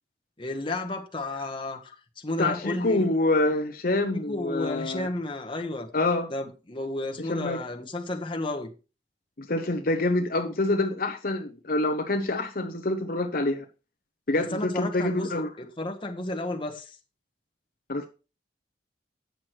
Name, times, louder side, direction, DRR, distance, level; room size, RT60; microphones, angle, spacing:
voice 1, 0.4-3.0 4.3-5.9 6.3-8.7 14.3-17.0, left 2 dB, 30° left, 1.3 m, -32 dB
voice 2, 2.4-5.1 5.9-6.3 7.2-7.6 9.4-13.7 14.3-15.5 17.9-18.1, left 2 dB, 55° left, 0.9 m, -26 dB
9.5 x 6.2 x 4.5 m
head